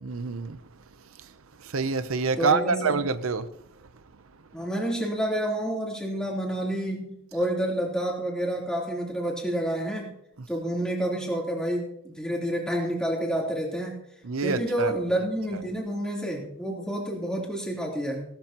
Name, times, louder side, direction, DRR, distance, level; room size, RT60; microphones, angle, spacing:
voice 1, 0.0-0.6 1.6-3.5 14.2-14.9, right 4 dB, 90° right, 0.7 m, -26 dB
voice 2, 2.4-3.0 4.5-10.1 10.5-13.9 14.4-18.3, right 1 dB, 5° left, 3.4 m, -29 dB
18.0 x 12.5 x 3.0 m
head